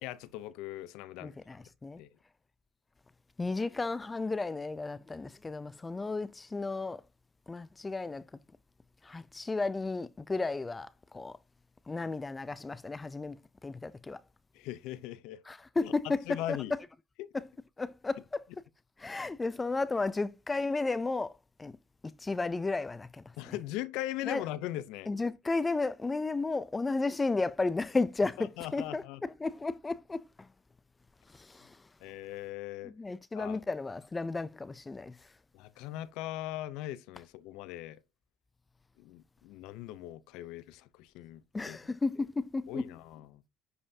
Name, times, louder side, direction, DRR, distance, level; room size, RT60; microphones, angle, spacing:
voice 1, 0.0-1.3 2.0-2.1 14.5-15.4 15.8-16.7 17.2-17.3 23.4-25.1 28.6-29.2 32.0-32.9 33.3-33.6 35.5-38.0 39.0-41.8 42.7-43.4, left 14 dB, 75° left, 0.6 m, -40 dB
voice 2, 1.2-2.0 3.4-7.0 7.5-8.2 9.0-11.4 11.9-14.2 15.5-16.6 17.3-17.5 17.8-18.4 19.0-21.3 21.6-21.7 22.2-23.5 24.3-24.4 25.1-30.5 31.3-31.8 32.8-35.2 41.5-42.8, left 3 dB, 15° left, 0.4 m, -33 dB
9.9 x 5.4 x 2.8 m
cardioid pair, 130°, 0 cm